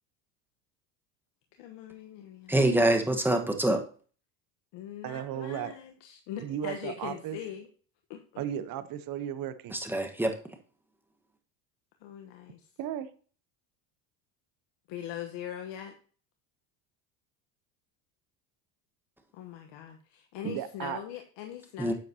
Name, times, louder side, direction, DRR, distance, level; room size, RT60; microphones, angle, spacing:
voice 1, 1.6-2.6 4.7-7.7 8.1-8.4 12.0-12.7 14.9-15.9 19.3-21.9, left 10 dB, 60° left, 4 dB, 1.2 m, -41 dB
voice 2, 2.5-3.8 9.7-10.4 21.8-21.9, right 1 dB, 5° right, 4 dB, 1.3 m, -25 dB
voice 3, 5.0-5.7 6.4-7.4 8.4-9.7 12.8-13.1 20.4-21.0, right 10 dB, 45° right, 12 dB, 1.0 m, -35 dB
10.5 x 7.4 x 2.8 m, 0.41 s
supercardioid pair, 100°, 48 cm